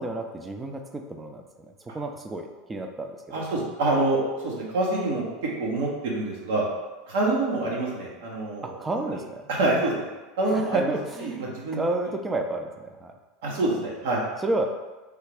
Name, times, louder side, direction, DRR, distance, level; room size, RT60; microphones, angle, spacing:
voice 1, 0.0-1.4 1.8-3.5 8.6-9.5 10.5-13.2 14.4-14.8, right 2 dB, 15° right, 4 dB, 0.4 m, -31 dB
voice 2, 3.3-5.2 5.6-6.7 7.1-8.8 9.5-10.1 10.4-10.9 11.2-11.8 13.4-14.2, right 2 dB, 75° right, -3 dB, 0.9 m, -26 dB
3.3 x 2.4 x 3.3 m, 1.2 s
hypercardioid pair, 95°, 0 cm